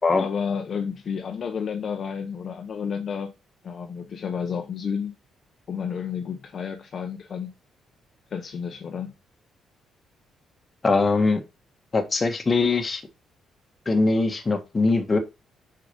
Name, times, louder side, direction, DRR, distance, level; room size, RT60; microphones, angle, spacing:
voice 1, 0.2-3.3 3.6-5.1 5.7-7.5 8.3-9.1, left 6 dB, 50° left, 0.9 m, -31 dB
voice 2, 10.8-11.4 11.9-13.0 13.8-15.2, left 3 dB, 30° left, 1.6 m, -21 dB
5.7 x 4.8 x 5.2 m
cardioid pair, 90°, 0 cm